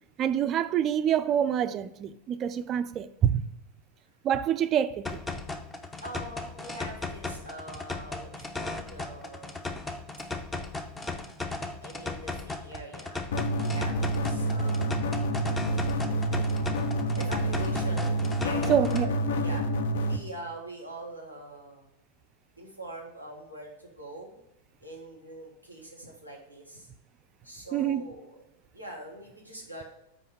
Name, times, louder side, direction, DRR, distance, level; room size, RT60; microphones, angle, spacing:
voice 1, 0.2-3.5 4.2-5.2 18.7-19.1 27.7-28.0, right 9 dB, 30° right, 0.4 m, -26 dB
sound 1, 5.0-19.1, left 3 dB, 15° left, 0.6 m, -37 dB
voice 2, 6.0-9.7 11.8-13.3 13.5-14.9 16.0-16.6 17.1-19.6 20.0-21.9 22.6-24.4 24.8-26.9 27.4-28.4 28.7-29.8, right 1 dB, 90° left, 1.6 m, -43 dB
sound 2, 13.3-20.2, right 1 dB, 55° left, 0.6 m, -28 dB
5.6 x 4.7 x 5.1 m
figure-of-eight pair, 90°, 0 cm